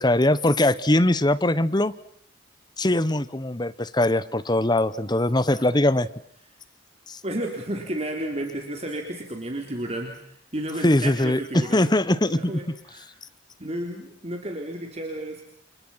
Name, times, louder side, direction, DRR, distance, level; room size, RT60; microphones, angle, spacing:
voice 1, 0.0-1.9 2.8-6.1 7.1-7.2 10.8-12.5, left 1 dB, 20° left, 16 dB, 1.1 m, -21 dB
voice 2, 7.2-11.9 12.3-13.1 13.6-15.4, right 1 dB, 35° right, 2 dB, 3.7 m, -32 dB
30.0 x 29.5 x 5.8 m, 0.64 s
head